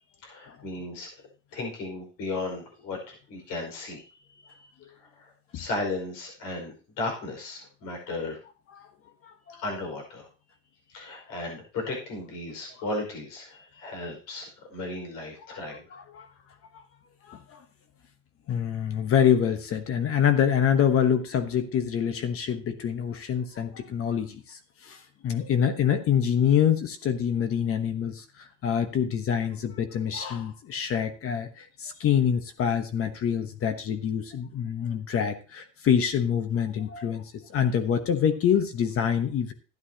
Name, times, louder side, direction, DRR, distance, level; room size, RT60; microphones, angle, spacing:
voice 1, 0.2-1.1 1.5-4.7 5.0-8.4 9.6-10.3 10.9-15.9, left 2 dB, 70° left, 1 dB, 5.2 m, -35 dB
voice 2, 15.9-16.3 17.3-17.6 18.5-39.5, left 8 dB, 40° left, 9 dB, 1.1 m, -26 dB
12.5 x 10.5 x 2.9 m, 0.35 s
cardioid pair, 130°, 34 cm